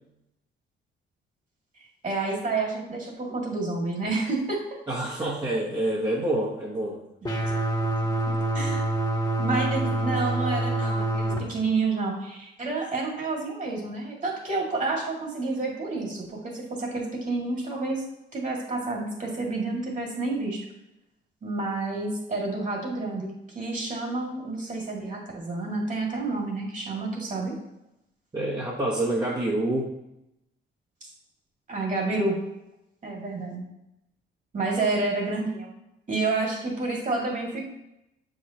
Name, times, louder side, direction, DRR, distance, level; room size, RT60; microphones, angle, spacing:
voice 1, 2.0-4.6 8.5-8.9 9.4-18.0 18.3-20.6 21.4-27.5 31.7-32.4 33.0-33.7 34.5-35.7 36.1-37.7, right 3 dB, 40° right, -1 dB, 2.1 m, -29 dB
voice 2, 4.9-7.0 28.3-29.9, right 1 dB, 20° right, -5 dB, 1.1 m, -27 dB
sound 1, 7.2-11.4, right 1 dB, 20° left, 1.3 m, -26 dB
7.4 x 4.9 x 2.9 m, 0.88 s
cardioid pair, 90°, 20 cm